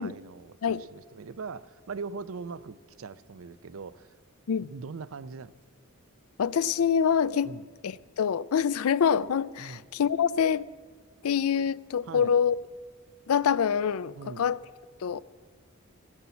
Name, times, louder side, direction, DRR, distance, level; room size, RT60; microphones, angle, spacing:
voice 1, 0.0-4.2 4.6-5.5 7.4-7.7 9.6-9.8 12.0-12.3 14.1-14.5, right 5 dB, 70° right, 0.5 m, -41 dB
voice 2, 6.4-7.5 7.8-10.7 11.2-12.6 13.3-14.6 15.0-15.2, left 7 dB, 80° left, 0.4 m, -25 dB
16.5 x 9.9 x 7.0 m
head